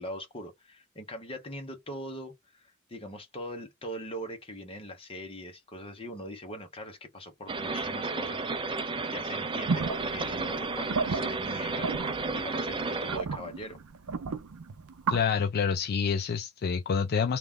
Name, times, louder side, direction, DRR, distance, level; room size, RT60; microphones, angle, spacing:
voice 1, 0.0-8.8 9.1-11.9 12.3-13.8, equal, 25° left, 1.0 m, -41 dB
sound 1, 7.5-13.2, right 3 dB, 25° right, 0.5 m, -32 dB
sound 2, 9.7-15.2, right 4 dB, 75° right, 0.5 m, -34 dB
voice 2, 15.1-17.4, left 6 dB, 45° left, 0.4 m, -27 dB
3.2 x 2.4 x 3.6 m
head